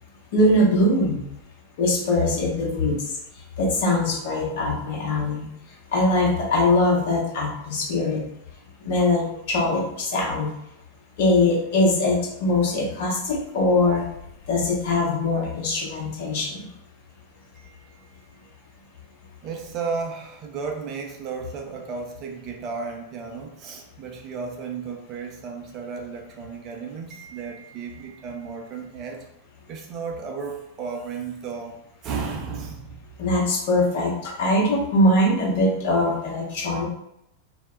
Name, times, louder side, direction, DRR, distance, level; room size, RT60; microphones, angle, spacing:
voice 1, 0.3-1.3 1.8-5.5 5.9-8.2 8.8-10.5 11.2-14.0 14.5-16.7 33.2-36.9, left 2 dB, 50° left, -2 dB, 0.8 m, -22 dB
voice 2, 17.5-18.3 19.4-29.2 29.7-33.0, right 5 dB, 35° right, 2 dB, 0.4 m, -34 dB
2.1 x 2.0 x 3.6 m, 0.80 s
figure-of-eight pair, 90°, 0 cm